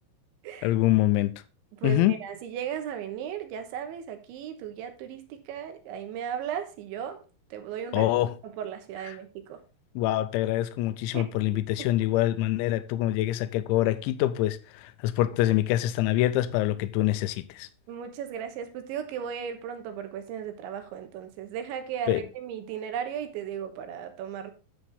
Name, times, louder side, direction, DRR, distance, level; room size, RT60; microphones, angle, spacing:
voice 1, 0.6-1.4 1.8-2.2 7.9-8.3 10.0-17.7 22.1-22.2, left 14 dB, 85° left, 3.0 m, -25 dB
voice 2, 1.8-7.2 7.5-8.1 8.6-9.6 11.1-11.3 17.9-24.5, right 8 dB, 90° right, 3.5 m, -36 dB
10.0 x 7.2 x 3.5 m
omnidirectional pair, 5.2 m